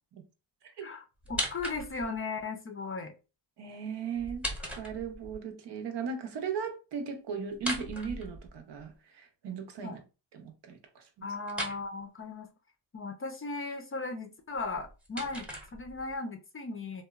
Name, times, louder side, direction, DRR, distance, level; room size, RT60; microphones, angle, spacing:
voice 1, 0.8-3.1 9.8-10.0 11.2-12.5 12.9-17.0, left 3 dB, 30° left, 0.5 m, -37 dB
sound 1, 1.2-2.2 4.2-5.4 7.5-8.8 11.5-11.8 14.5-16.2, equal, 5° right, 0.8 m, -38 dB
voice 2, 3.6-4.5 4.7-10.0 10.3-11.3, right 6 dB, 65° right, 0.7 m, -37 dB
2.8 x 2.0 x 2.3 m
cardioid pair, 80°, 46 cm